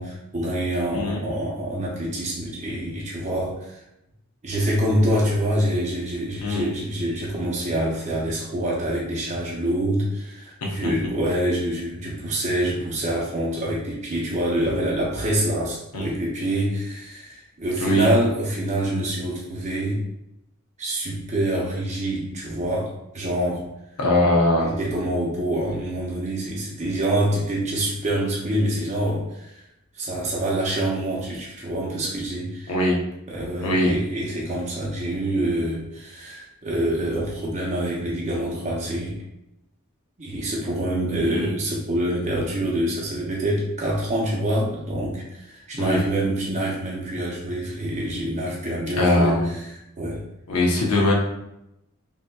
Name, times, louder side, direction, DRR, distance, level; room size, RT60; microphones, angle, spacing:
voice 1, 0.0-3.8 4.4-20.1 20.8-23.7 24.6-29.6 29.9-32.8 33.3-39.2 40.2-50.2, right 1 dB, 30° right, -4 dB, 0.5 m, -26 dB
voice 2, 6.4-6.7 10.6-10.9 15.9-16.1 17.8-18.1 24.0-24.7 32.7-33.0 33.6-34.0 41.2-41.5 45.8-46.1 49.0-49.5 50.5-51.1, left 1 dB, 85° left, -2 dB, 0.7 m, -21 dB
3.5 x 2.7 x 2.2 m, 0.84 s
head